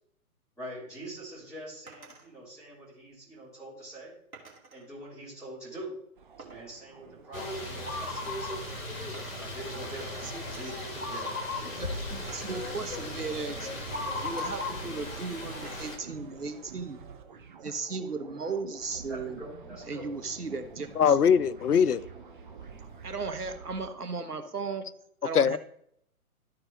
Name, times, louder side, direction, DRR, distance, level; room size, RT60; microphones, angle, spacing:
voice 1, 0.6-4.1 4.7-5.9 6.5-8.8 9.3-11.9 19.1-20.1, right 1 dB, 5° left, 3.7 m, -44 dB
sound 1, 1.9-2.3 4.3-4.9 6.4-8.9 9.1-10.1 10.5-10.9 12.3-13.8 14.2-15.0 15.6-16.2 16.5-17.3, right 3 dB, 65° right, 2.5 m, -54 dB
sound 2, 6.2-23.9, right 6 dB, 35° right, 0.8 m, -49 dB
sound 3, 7.3-16.0, left 2 dB, 60° left, 2.3 m, -36 dB
voice 2, 11.8-13.7 14.2-17.0 17.6-19.4 19.9-21.2 23.0-24.9 25.2-25.6, right 4 dB, 85° right, 1.3 m, -36 dB
voice 3, 21.0-22.1 25.3-25.6, left 7 dB, 85° left, 0.6 m, -22 dB
13.0 x 4.5 x 3.8 m
figure-of-eight pair, 135°, 45 cm